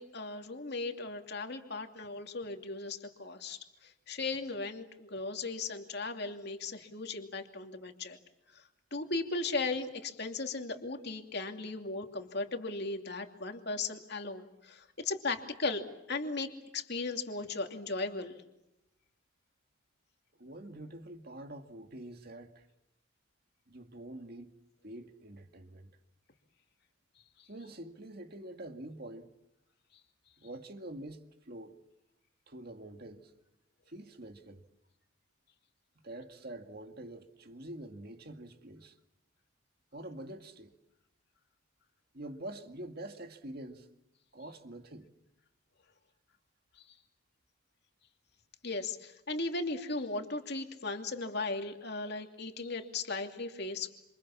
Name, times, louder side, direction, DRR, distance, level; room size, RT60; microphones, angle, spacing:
voice 1, 0.0-3.6 4.1-8.2 8.9-18.4 48.6-53.9, left 3 dB, 50° left, 2.7 m, -37 dB
voice 2, 20.4-22.6 23.7-24.5 24.8-25.9 27.5-29.3 30.4-31.8 32.5-33.3 33.9-34.6 36.0-38.9 39.9-40.8 42.1-43.9 44.3-45.1, right 1 dB, 45° right, 2.1 m, -46 dB
27.5 x 27.0 x 7.3 m
head